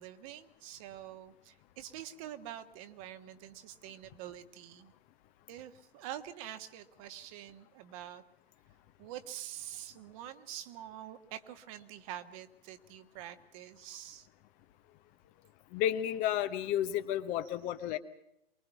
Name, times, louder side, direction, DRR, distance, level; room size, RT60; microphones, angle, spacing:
voice 1, 0.0-4.9 5.5-8.2 9.0-14.3 17.4-17.5 17.9-18.0, right 11 dB, 35° right, 10 dB, 1.4 m, -46 dB
voice 2, 15.7-18.0, left 11 dB, 25° left, 10 dB, 1.0 m, -32 dB
24.0 x 21.5 x 5.8 m, 0.80 s
figure-of-eight pair, 120°, 30 cm